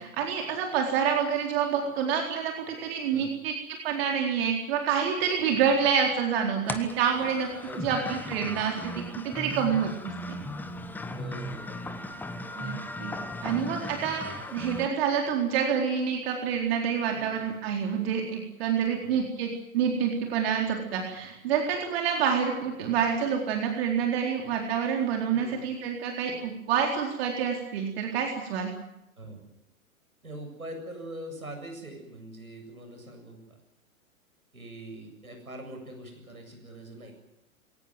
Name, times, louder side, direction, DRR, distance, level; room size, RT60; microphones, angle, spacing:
voice 1, 0.0-3.5 3.8-7.5 7.8-10.1 12.6-13.1 13.4-28.7, right 7 dB, 45° right, 1 dB, 4.2 m, -27 dB
sound 1, 6.7-14.9, left 1 dB, 5° left, 1.0 m, -37 dB
voice 2, 7.6-8.1 11.1-11.8 17.1-17.5 19.0-19.3 25.3-25.7 29.2-29.4 30.2-33.6 34.5-37.1, right 1 dB, 80° right, 4 dB, 7.8 m, -43 dB
23.0 x 18.0 x 9.4 m, 0.85 s
figure-of-eight pair, 110°, 42 cm